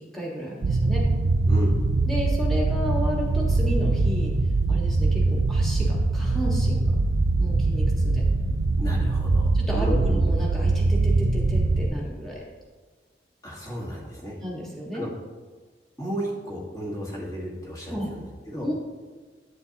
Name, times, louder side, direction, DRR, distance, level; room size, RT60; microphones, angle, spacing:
voice 1, 0.1-1.0 2.1-4.3 4.7-6.9 7.4-8.2 9.5-12.4 14.4-15.0 17.9-18.1 18.6-18.7, equal, ahead, -4 dB, 1.6 m, -32 dB
sound 1, 0.6-11.9, right 3 dB, 75° right, 0.5 m, -22 dB
voice 2, 1.5-1.8 8.8-10.1 13.4-14.4 14.9-15.1 16.0-18.7, equal, 20° left, -4 dB, 1.7 m, -33 dB
8.3 x 8.2 x 2.9 m, 1.4 s
head